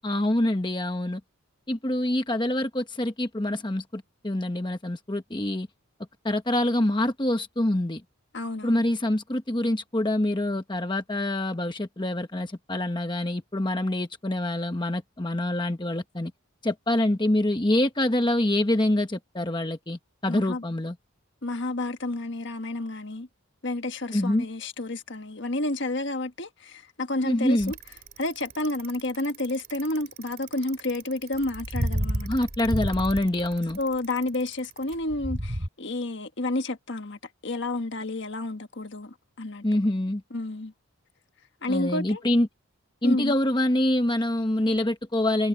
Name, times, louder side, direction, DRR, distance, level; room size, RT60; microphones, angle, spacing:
voice 1, 0.0-1.2 1.7-5.7 6.2-8.0 8.6-16.3 16.6-21.0 24.1-24.5 27.2-27.7 32.2-33.8 39.6-40.2 41.7-42.5 43.0-45.5, left 1 dB, 20° left, 1.0 m, -25 dB
voice 2, 8.3-8.8 20.3-20.6 21.4-23.3 23.6-27.8 28.2-32.3 33.8-39.6 40.3-40.7 41.6-42.2 43.0-43.3, left 2 dB, 55° left, 1.5 m, -30 dB
Bicycle, 27.6-35.7, right 1 dB, 45° right, 2.9 m, -32 dB
head